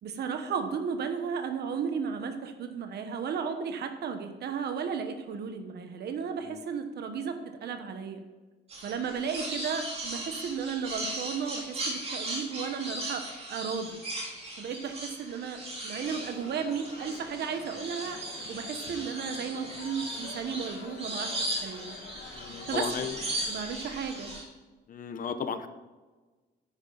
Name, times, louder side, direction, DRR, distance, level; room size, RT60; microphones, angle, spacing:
voice 1, 0.0-8.2 8.8-18.2 18.5-22.0 22.7-22.9 23.5-24.3, right 6 dB, 60° right, 7 dB, 1.2 m, -34 dB
sound 1, 8.7-24.4, right 1 dB, 35° right, 2.9 m, -38 dB
sound 2, 16.0-24.4, left 5 dB, 90° left, 1.8 m, -48 dB
voice 2, 22.3-23.1 24.9-25.7, left 6 dB, 45° left, 9 dB, 0.8 m, -34 dB
10.5 x 9.6 x 4.0 m, 1.3 s
wide cardioid pair, 180°, 19 cm